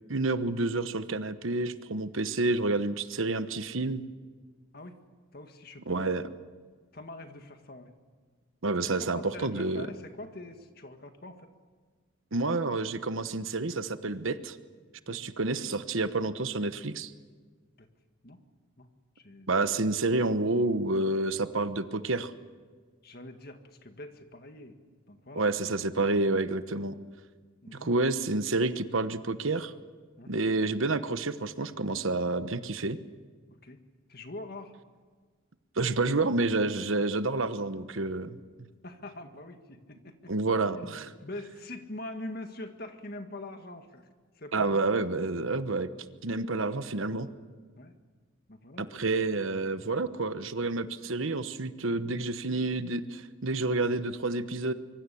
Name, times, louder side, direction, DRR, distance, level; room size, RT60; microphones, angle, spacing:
voice 1, 0.1-4.0 5.9-6.2 8.6-9.9 12.3-14.6 15.1-17.1 19.5-22.3 25.3-26.9 27.8-29.7 30.3-33.0 35.8-38.4 40.3-41.1 44.5-45.9 46.2-47.3 48.8-54.7, right 3 dB, 70° right, 11 dB, 1.1 m, -29 dB
voice 2, 5.3-6.0 6.9-7.9 9.0-11.5 15.1-15.2 17.8-17.9 18.2-18.4 18.8-18.9 19.2-19.5 23.0-24.8 25.1-25.5 27.6-27.9 30.2-30.3 33.6-33.8 34.1-34.7 38.8-40.3 40.7-44.1 44.4-45.0 47.8-47.9 48.5-48.8, left 2 dB, 45° left, 6 dB, 1.9 m, -44 dB
25.5 x 23.5 x 7.1 m, 1.5 s
head